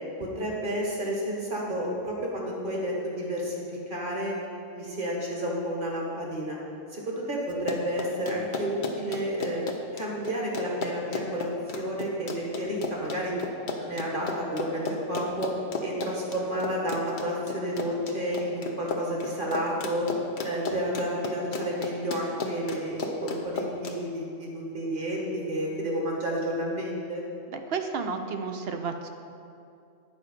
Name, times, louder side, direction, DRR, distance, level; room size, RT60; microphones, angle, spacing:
voice 1, 0.2-4.3 4.7-6.6 6.9-9.6 9.9-11.5 11.7-13.3 13.8-15.5 15.8-20.1 20.4-27.2, equal, 40° right, -3 dB, 1.7 m, -31 dB
Run, 7.5-24.0, left 3 dB, 45° left, 0.8 m, -34 dB
voice 2, 27.5-29.1, right 5 dB, 60° right, 6 dB, 0.8 m, -32 dB
9.6 x 4.7 x 6.6 m, 2.6 s
omnidirectional pair, 1.3 m